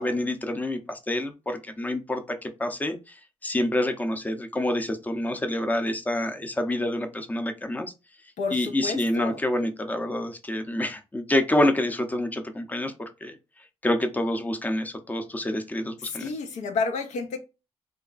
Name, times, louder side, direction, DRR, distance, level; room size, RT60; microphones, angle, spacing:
voice 1, 0.0-3.1 3.4-7.9 8.5-13.4 13.8-16.3, left 1 dB, 15° left, 0.5 m, -27 dB
voice 2, 8.4-9.4 16.0-17.4, left 4 dB, 85° left, 0.6 m, -30 dB
2.8 x 2.4 x 2.4 m
cardioid pair, 80°, 12 cm